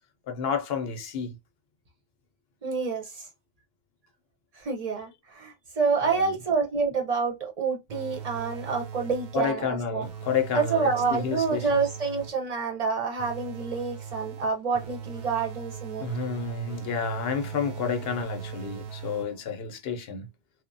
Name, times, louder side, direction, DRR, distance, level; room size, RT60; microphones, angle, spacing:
voice 1, 0.3-1.4 6.0-6.2 9.3-11.7 16.0-20.3, left 6 dB, 75° left, 0.8 m, -30 dB
voice 2, 2.6-3.3 4.6-10.1 10.5-16.1, right 5 dB, 40° right, 0.8 m, -28 dB
sound 1, 7.9-9.6 10.0-12.5 13.2-19.6, right 7 dB, 75° right, 0.8 m, -40 dB
3.0 x 2.1 x 2.6 m
omnidirectional pair, 1.0 m